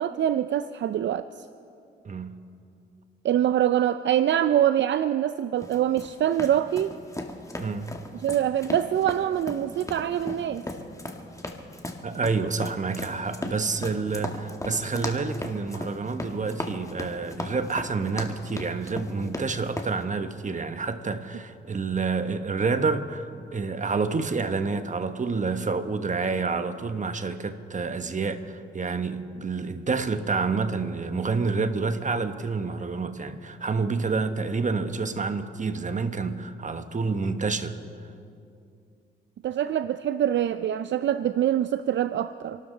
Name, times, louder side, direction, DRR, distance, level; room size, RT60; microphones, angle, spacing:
voice 1, 0.0-1.4 3.2-7.0 8.2-10.6 39.4-42.6, right 11 dB, 65° right, 0.5 m, -24 dB
sound 1, 5.6-19.9, left 1 dB, 15° left, 2.0 m, -36 dB
voice 2, 7.6-7.9 12.0-37.8, right 4 dB, 35° right, 1.3 m, -28 dB
28.0 x 12.5 x 4.0 m
supercardioid pair, 60°, 21 cm